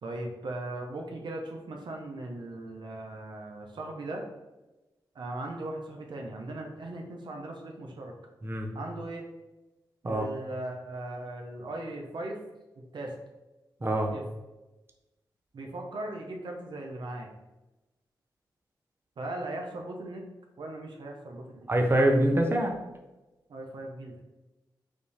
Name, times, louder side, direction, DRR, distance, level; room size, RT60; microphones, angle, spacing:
voice 1, 0.0-4.2 5.1-8.1 8.7-9.2 10.0-12.4 12.8-13.1 14.1-14.2 15.5-17.3 19.2-20.3 20.6-21.7 23.5-24.2, right 2 dB, 70° right, 1 dB, 0.7 m, -38 dB
voice 2, 13.8-14.1 21.7-22.8, right 1 dB, 30° right, 2 dB, 0.7 m, -24 dB
5.0 x 2.7 x 3.3 m, 1.1 s
cardioid pair, 55°, 8 cm